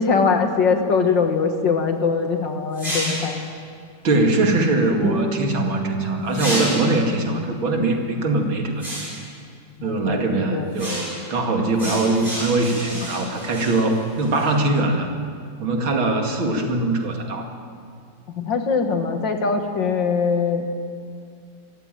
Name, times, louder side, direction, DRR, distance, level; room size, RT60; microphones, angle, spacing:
voice 1, 0.0-3.4 9.8-10.2 10.5-10.7 18.4-20.7, left 5 dB, 65° left, 5 dB, 2.4 m, -21 dB
sound 1, 2.7-3.5 6.3-7.1 8.8-9.3 10.8-11.3 11.8-14.5, equal, 30° right, 8.0 m, -30 dB
voice 2, 4.0-9.1 9.8-15.1 15.6-17.5, right 2 dB, 90° right, 2 dB, 3.1 m, -22 dB
Guitar, 5.0-8.0, right 2 dB, 65° right, 3.5 m, -30 dB
24.0 x 14.5 x 9.2 m, 2.2 s
omnidirectional pair, 2.1 m